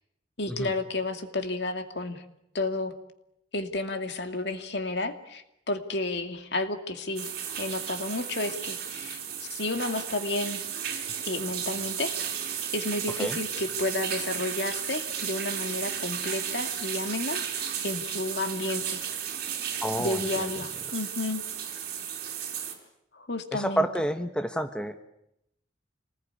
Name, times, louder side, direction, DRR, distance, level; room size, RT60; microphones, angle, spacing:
voice 1, 0.4-2.2 2.5-2.9 3.5-7.3 7.6-9.2 9.5-10.6 11.2-12.2 12.7-17.4 17.8-19.0 20.0-21.4 23.1-23.9, left 2 dB, 65° left, 7 dB, 2.4 m, -31 dB
sound 1, 7.1-22.7, right 8 dB, 55° right, 4.9 m, -34 dB
voice 2, 19.8-20.5 23.5-25.0, equal, 5° left, 8 dB, 1.1 m, -29 dB
27.0 x 20.0 x 9.7 m, 0.82 s
head